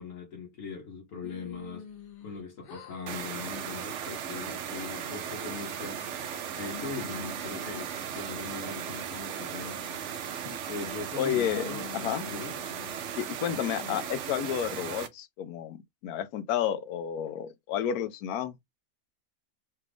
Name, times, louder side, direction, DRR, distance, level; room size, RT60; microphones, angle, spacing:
voice 1, 0.0-1.8 2.2-6.0 6.5-9.8 10.7-11.9 12.2-12.6, left 4 dB, 65° left, 1.4 m, -40 dB
sound 1, 1.2-2.4 2.6-3.2 3.6-3.9 4.4-5.0 5.5-6.2 6.6-8.4 8.9-9.1 9.6-10.1 10.6-11.1 11.4-13.0 13.5-14.1, left 6 dB, 50° left, 0.8 m, -46 dB
sound 2, 3.1-15.1, right 8 dB, 65° right, 0.8 m, -37 dB
voice 2, 11.2-12.2 13.2-18.6, left 9 dB, 85° left, 1.1 m, -31 dB
3.4 x 2.4 x 3.4 m
omnidirectional pair, 1.5 m